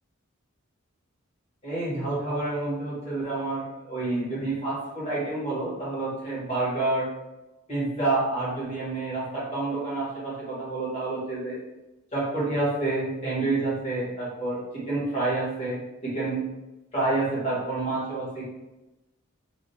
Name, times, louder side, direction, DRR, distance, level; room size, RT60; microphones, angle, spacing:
voice 1, 1.6-7.1 7.7-11.6 12.1-14.6 14.9-16.4 16.9-18.4, right 2 dB, 30° left, -8 dB, 1.5 m, -28 dB
3.4 x 2.6 x 2.7 m, 1.0 s
head